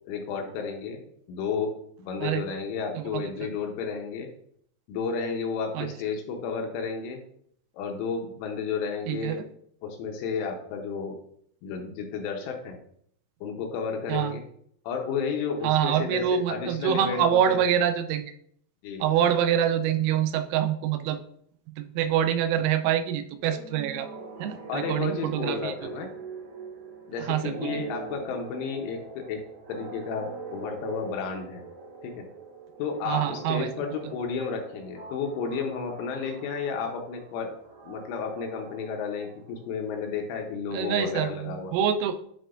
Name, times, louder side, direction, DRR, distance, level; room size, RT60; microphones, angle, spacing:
voice 1, 0.1-1.0 1.3-4.3 4.9-7.2 7.7-9.4 9.8-11.2 11.6-12.8 13.4-14.4 14.9-17.6 18.8-19.1 24.7-26.1 27.1-29.4 29.7-31.6 32.0-32.2 32.8-37.6 37.8-41.7, left 5 dB, 80° left, 2 dB, 3.1 m, -32 dB
voice 2, 2.9-3.5 5.7-5.9 9.1-9.5 14.1-14.4 15.6-18.3 19.0-21.2 21.8-24.1 24.4-25.7 27.2-27.8 33.1-33.7 40.7-42.2, right 9 dB, 85° right, 8 dB, 3.3 m, -26 dB
sound 1, 23.4-39.8, right 4 dB, 70° right, 3.9 m, -43 dB
10.5 x 4.4 x 2.5 m, 0.66 s
omnidirectional pair, 5.9 m